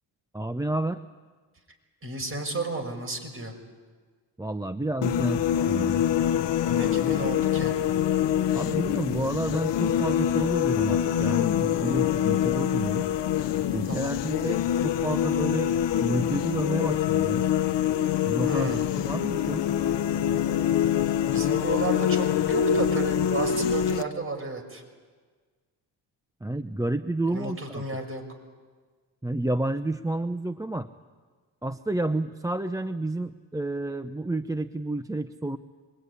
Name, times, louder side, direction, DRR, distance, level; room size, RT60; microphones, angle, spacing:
voice 1, 0.3-1.0 4.4-6.0 8.5-13.1 13.7-17.4 18.1-19.6 26.4-27.8 29.2-30.9 31.6-35.6, right 2 dB, 10° right, 10 dB, 0.7 m, -30 dB
voice 2, 2.0-3.5 6.7-7.7 13.9-14.1 18.4-18.9 21.3-24.8 27.3-28.2, right 2 dB, 30° right, 3 dB, 6.1 m, -32 dB
sound 1, 5.0-24.0, left 10 dB, 70° left, 1.1 m, -25 dB
26.0 x 22.0 x 9.8 m, 1.5 s
cardioid pair, 85°, 44 cm